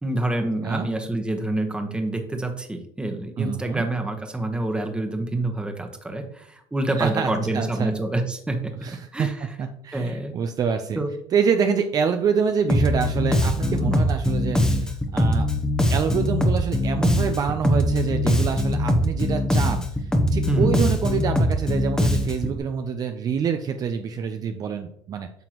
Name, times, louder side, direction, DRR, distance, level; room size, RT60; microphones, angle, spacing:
voice 1, 0.0-8.7 9.1-9.5 9.9-10.3 11.0-11.1 13.8-14.0 20.5-20.9, right 2 dB, 10° right, 4 dB, 1.2 m, -27 dB
voice 2, 3.4-3.9 7.0-7.9 8.8-9.3 9.6-11.0 11.3-15.5 15.9-25.3, right 6 dB, 40° right, 6 dB, 0.6 m, -26 dB
Bass guitar, 12.7-22.6, left 1 dB, 5° left, 0.9 m, -22 dB
9.1 x 5.8 x 3.0 m, 0.73 s
cardioid pair, 115°, 10 cm